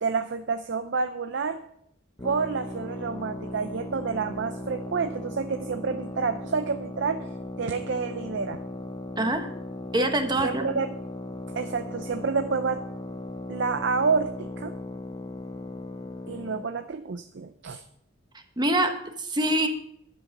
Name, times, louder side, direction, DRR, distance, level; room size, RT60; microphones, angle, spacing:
voice 1, 0.0-1.6 2.2-7.3 7.6-8.6 10.4-10.9 11.5-12.8 13.5-14.7 16.3-17.8, right 5 dB, 60° right, 9 dB, 0.5 m, -29 dB
sound 1, 2.2-16.7, left 1 dB, 20° left, 0.9 m, -37 dB
voice 2, 9.2-9.5 9.9-10.7 18.6-19.7, right 1 dB, 20° right, 6 dB, 1.2 m, -25 dB
11.0 x 7.5 x 6.6 m, 0.74 s
head